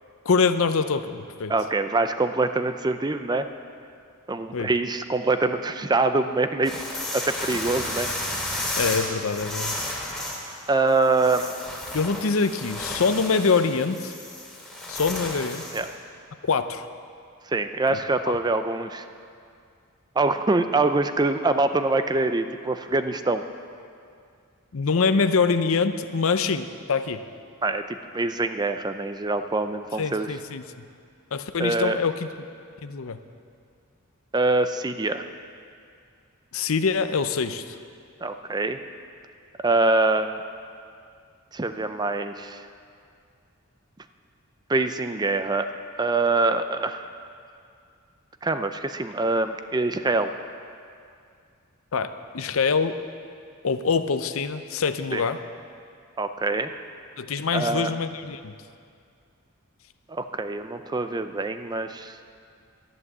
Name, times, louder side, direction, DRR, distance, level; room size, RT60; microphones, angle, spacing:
voice 1, 0.2-1.5 4.5-4.7 8.8-9.7 11.9-14.1 14.9-15.6 16.4-16.9 24.7-27.2 30.0-30.6 31.3-32.3 32.8-33.2 36.5-37.8 51.9-53.0 53.6-55.4 57.2-58.5, left 5 dB, 65° left, 10 dB, 0.6 m, -24 dB
voice 2, 1.5-3.5 4.3-6.8 7.1-8.1 10.7-11.5 15.7-15.9 17.5-19.1 20.2-23.4 27.6-30.3 31.6-32.0 34.3-35.3 38.2-38.8 39.6-40.4 41.5-42.7 44.7-45.7 46.0-47.1 48.4-50.3 55.1-55.2 56.2-56.7 57.5-57.9 60.1-62.2, right 3 dB, 20° right, 9 dB, 0.5 m, -24 dB
sound 1, 6.6-15.9, left 1 dB, 5° left, 2.6 m, -33 dB
12.0 x 11.0 x 7.3 m, 2.3 s
head